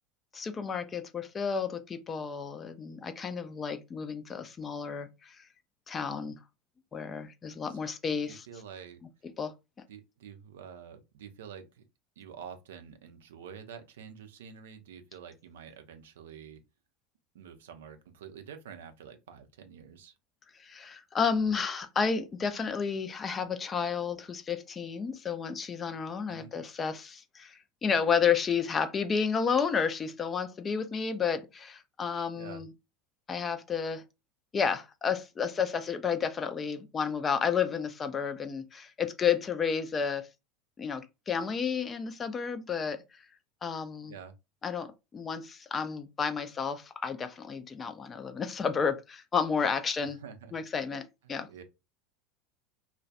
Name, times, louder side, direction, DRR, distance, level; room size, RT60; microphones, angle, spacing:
voice 1, 0.3-5.4 5.9-6.4 6.9-8.5 9.4-9.5 20.6-32.7 33.3-34.0 34.5-40.3 40.8-43.0 43.6-44.1 44.6-50.2 50.5-51.5, left 6 dB, 25° left, 0.4 m, -31 dB
voice 2, 8.2-9.0 9.9-11.8 12.2-16.6 17.3-20.1 26.3-26.5 32.3-32.6 44.1-44.3 50.0-50.5 51.2-51.6, right 7 dB, 65° right, 0.4 m, -48 dB
2.3 x 2.1 x 2.6 m
figure-of-eight pair, 75°, 0 cm